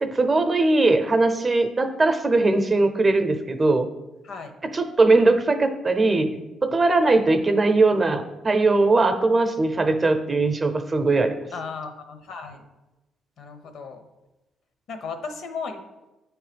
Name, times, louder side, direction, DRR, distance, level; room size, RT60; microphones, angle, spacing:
voice 1, 0.0-3.9 4.7-11.5, right 2 dB, 30° right, 8 dB, 0.7 m, -20 dB
voice 2, 11.5-12.6 13.4-14.0 14.9-15.8, left 5 dB, 70° left, 7 dB, 0.9 m, -35 dB
8.7 x 3.1 x 5.1 m, 1.0 s
cardioid pair, 90°, 0 cm